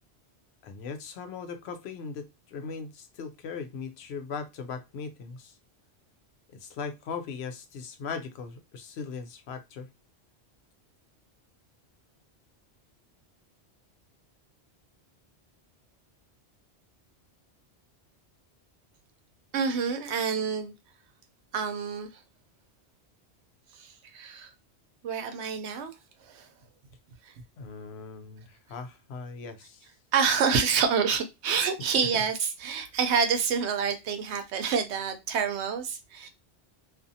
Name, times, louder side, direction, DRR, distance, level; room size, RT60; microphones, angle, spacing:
voice 1, 0.6-5.6 6.6-9.9 27.6-29.8 31.8-32.2, left 5 dB, 75° left, 0.8 m, -39 dB
voice 2, 19.5-20.7 21.5-22.2 23.7-24.5 25.0-25.9 26.2-26.5 27.2-27.3 30.1-36.3, right 6 dB, 80° right, 0.9 m, -28 dB
2.5 x 2.4 x 2.6 m
omnidirectional pair, 1.1 m